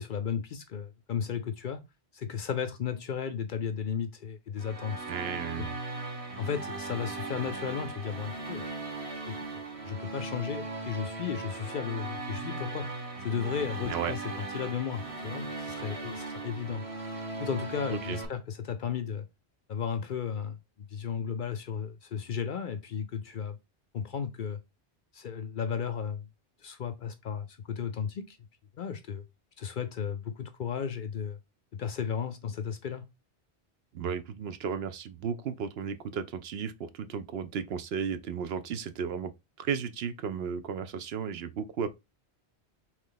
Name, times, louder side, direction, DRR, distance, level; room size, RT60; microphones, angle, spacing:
voice 1, 0.0-1.8 2.1-5.0 5.6-5.7 6.4-8.7 9.3-16.8 17.4-19.2 19.7-20.6 20.9-23.6 23.9-24.6 25.1-26.3 26.6-28.4 28.8-29.2 29.6-31.4 31.8-33.0, left 7 dB, 60° left, 0.6 m, -34 dB
sound 1, 4.6-18.3, right 3 dB, 30° right, 1.0 m, -38 dB
voice 2, 5.1-5.7 13.9-14.1 17.9-18.2 33.9-39.3 39.6-41.9, right 7 dB, 70° right, 0.8 m, -34 dB
4.0 x 3.1 x 3.8 m
omnidirectional pair, 1.1 m